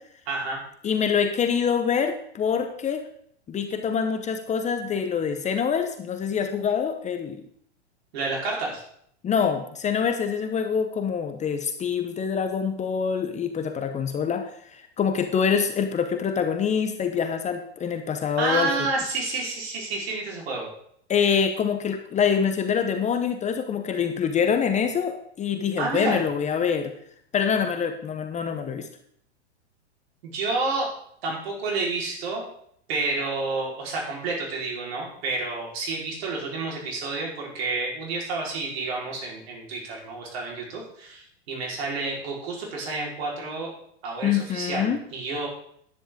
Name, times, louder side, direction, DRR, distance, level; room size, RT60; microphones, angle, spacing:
voice 1, 0.3-0.6 8.1-8.8 18.4-20.7 25.8-26.2 30.2-30.9 31.2-32.5 32.9-43.7 44.0-45.5, right 3 dB, 65° right, -2 dB, 4.7 m, -29 dB
voice 2, 0.8-3.0 3.5-7.4 9.2-18.7 21.1-26.9 27.3-28.9 44.2-45.0, left 7 dB, 20° left, 7 dB, 0.9 m, -25 dB
10.5 x 10.0 x 3.8 m, 0.67 s
hypercardioid pair, 115°, 34 cm